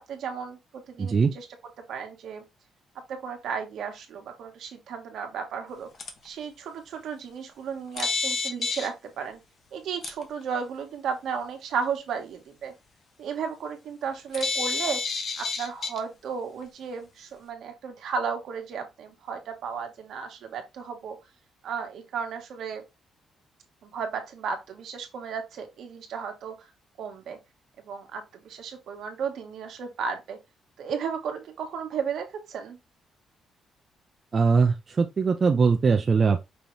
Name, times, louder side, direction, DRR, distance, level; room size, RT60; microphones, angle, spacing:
voice 1, 0.1-1.5 1.9-2.4 3.1-5.9 6.2-9.4 9.7-12.7 13.2-15.0 15.4-21.2 21.6-22.8 23.8-26.7 27.0-27.4 27.8-30.4 30.8-32.8, right 6 dB, 70° right, 1.3 m, -34 dB
voice 2, 1.0-1.3 34.3-36.4, right 5 dB, 35° right, 0.5 m, -21 dB
sound 1, 6.0-6.1 8.0-8.9 10.0-10.1 14.3-16.0, left 4 dB, 50° left, 1.0 m, -28 dB
5.4 x 2.9 x 3.2 m
cardioid pair, 135°, 0 cm